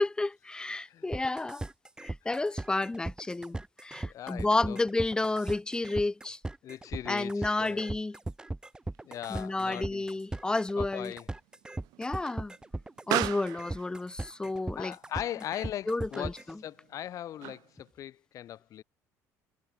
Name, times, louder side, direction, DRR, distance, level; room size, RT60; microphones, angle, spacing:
voice 1, 0.0-1.7 2.0-6.4 7.1-8.2 9.3-11.1 12.0-12.5 13.1-14.9 15.9-16.6, left 2 dB, 10° left, 2.3 m, -31 dB
sound 1, 1.1-16.5, right 2 dB, 10° right, 7.9 m, -38 dB
voice 2, 4.0-4.8 6.6-7.9 9.0-10.0 10.8-11.3 14.8-16.4 16.6-18.8, left 11 dB, 55° left, 3.5 m, -39 dB
Explosion, 8.9-17.9, right 21 dB, 80° right, 1.3 m, -41 dB
cardioid pair, 115°, 7 cm